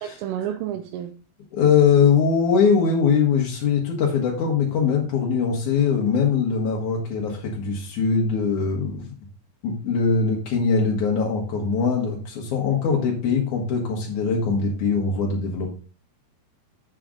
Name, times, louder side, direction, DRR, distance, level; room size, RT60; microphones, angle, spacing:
voice 1, 0.0-1.1, right 10 dB, 85° right, 3.2 m, -30 dB
voice 2, 1.5-9.1 9.6-15.7, left 5 dB, 85° left, 1.7 m, -21 dB
7.7 x 7.5 x 3.8 m
omnidirectional pair, 5.8 m